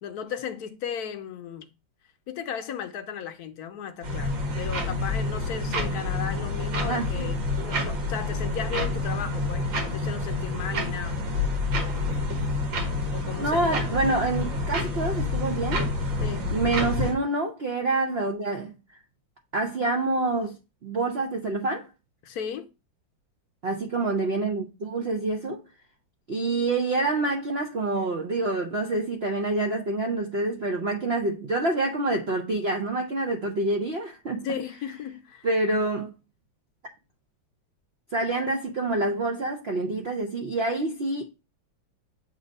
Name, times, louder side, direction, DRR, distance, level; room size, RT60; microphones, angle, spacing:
voice 1, 0.0-1.7 2.3-11.2 13.1-13.8 16.2-16.5 22.2-22.7 34.4-35.5, left 8 dB, 65° left, 1.0 m, -35 dB
sound 1, 4.0-17.1, left 2 dB, 90° right, 2.2 m, -28 dB
voice 2, 6.8-7.2 13.4-15.8 16.5-18.7 19.5-20.6 20.8-21.9 23.6-25.6 26.3-34.5 35.4-36.1 38.1-41.2, right 2 dB, 65° right, 0.6 m, -27 dB
7.3 x 2.6 x 5.2 m
omnidirectional pair, 2.0 m